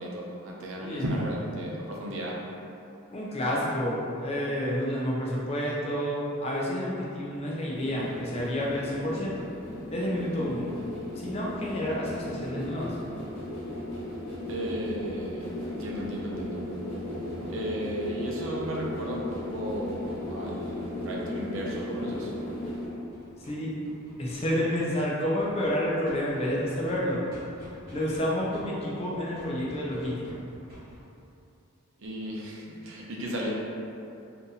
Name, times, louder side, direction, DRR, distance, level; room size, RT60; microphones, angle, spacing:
voice 1, 0.0-2.4 14.5-16.6 17.5-22.3 32.0-33.6, equal, 65° right, -3 dB, 0.6 m, -34 dB
voice 2, 3.1-9.5 9.9-10.7 11.2-13.0 23.4-23.7 24.2-27.2 27.9-30.4, equal, 30° left, -5 dB, 0.5 m, -29 dB
sound 1, 7.7-22.9, left 1 dB, 75° left, 1.1 m, -36 dB
sound 2, 22.1-28.2 28.5-31.0, equal, 40° right, 1.1 m, -51 dB
2.7 x 2.6 x 3.9 m, 2.7 s
head